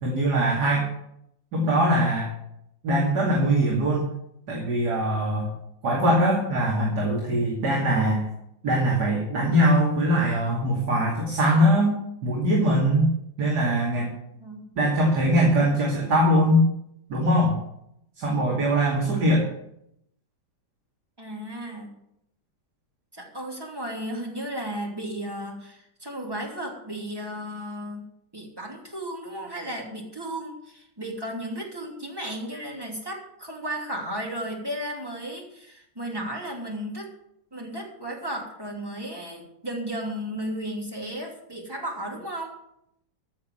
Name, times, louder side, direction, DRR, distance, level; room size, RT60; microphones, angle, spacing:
voice 1, 0.0-0.9 1.5-2.3 2.8-4.1 4.5-5.5 5.8-8.3 8.6-13.1 13.4-14.1 14.8-16.7 17.1-17.6 18.2-19.5, equal, 65° right, -3 dB, 3.1 m, -22 dB
voice 2, 14.3-14.7 21.2-21.9 23.1-28.0 28.3-37.1 37.5-42.6, right 1 dB, 10° right, -1 dB, 2.8 m, -34 dB
15.0 x 6.6 x 7.7 m, 0.77 s
omnidirectional pair, 1.9 m